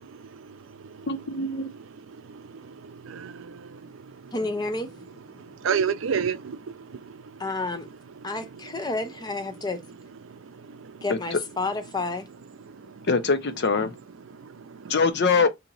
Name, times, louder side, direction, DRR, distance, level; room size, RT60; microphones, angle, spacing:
voice 1, 0.0-4.4 5.1-8.9 9.5-9.7 10.2-11.1 12.6-13.1 14.2-15.0, right 7 dB, 75° right, 0.5 m, -35 dB
voice 2, 1.1-1.7 11.1-11.4 13.1-13.9 14.9-15.5, left 4 dB, 55° left, 0.6 m, -23 dB
voice 3, 4.3-4.9 7.4-7.9 8.2-9.8 11.0-12.3, left 3 dB, 20° left, 0.6 m, -30 dB
2.9 x 2.8 x 3.9 m
head